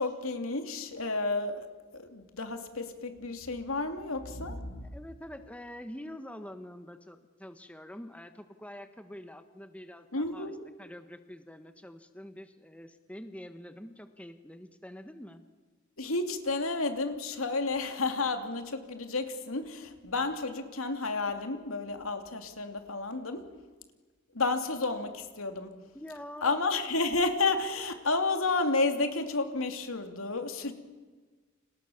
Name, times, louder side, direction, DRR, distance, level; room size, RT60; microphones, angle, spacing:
voice 1, 0.0-1.7 1.9-4.9 10.1-10.6 16.0-23.5 24.3-25.8 26.4-30.7, left 3 dB, 70° left, 6 dB, 3.0 m, -31 dB
voice 2, 4.8-10.5 10.8-15.4 25.9-26.6, left 1 dB, 5° left, 8 dB, 1.3 m, -46 dB
30.0 x 27.0 x 7.2 m, 1.4 s
head